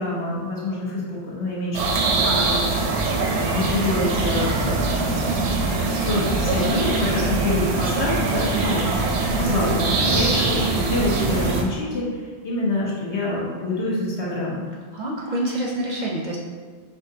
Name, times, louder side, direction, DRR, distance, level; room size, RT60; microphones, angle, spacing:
voice 1, 0.0-8.8 9.3-14.6, left 2 dB, 85° left, -6 dB, 1.4 m, -26 dB
sound 1, 1.7-11.6, right 3 dB, 90° right, 0.9 m, -23 dB
voice 2, 8.5-8.9 14.9-16.4, right 1 dB, 55° right, -2 dB, 0.6 m, -27 dB
5.8 x 2.4 x 2.7 m, 1.5 s
omnidirectional pair, 1.1 m